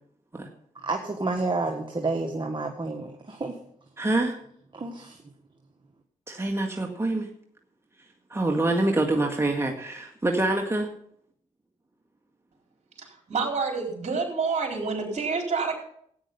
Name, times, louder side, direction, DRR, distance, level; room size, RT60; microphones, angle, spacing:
voice 1, 0.8-3.6 4.7-5.2, right 3 dB, 35° right, 2 dB, 1.7 m, -30 dB
voice 2, 4.0-4.4 6.3-7.3 8.3-10.9, right 2 dB, 20° right, 2 dB, 1.9 m, -25 dB
voice 3, 13.0-15.8, right 4 dB, 55° right, 0 dB, 4.3 m, -28 dB
14.0 x 9.3 x 5.5 m, 0.66 s
cardioid pair, 55°, 14 cm